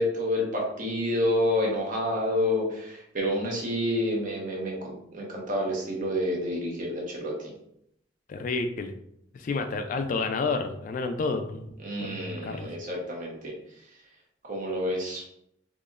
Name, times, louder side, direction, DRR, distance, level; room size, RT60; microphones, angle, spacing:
voice 1, 0.0-7.5 11.8-13.9 14.4-15.2, left 1 dB, 45° right, -2 dB, 1.0 m, -29 dB
voice 2, 8.3-8.9 9.3-11.7 12.0-12.7, left 3 dB, 45° left, 7 dB, 0.3 m, -30 dB
3.9 x 2.9 x 2.4 m, 0.75 s
head